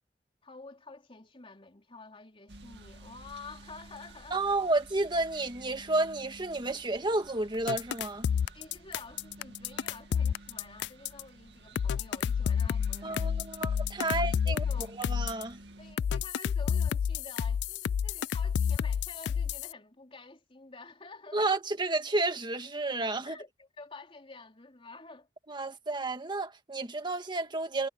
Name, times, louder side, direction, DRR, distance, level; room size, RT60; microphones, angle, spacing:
voice 1, 0.4-4.5 8.5-13.4 14.0-15.0 15.8-21.5 23.2-25.3, left 3 dB, 30° left, 3.6 m, -49 dB
sound 1, 2.5-16.0, right 1 dB, 75° right, 2.3 m, -51 dB
voice 2, 4.3-8.3 13.0-15.6 21.3-23.4 25.5-27.9, right 2 dB, 25° right, 1.8 m, -31 dB
sound 2, 7.7-11.2 11.7-15.4 16.0-19.7, left 7 dB, 75° left, 0.3 m, -29 dB
head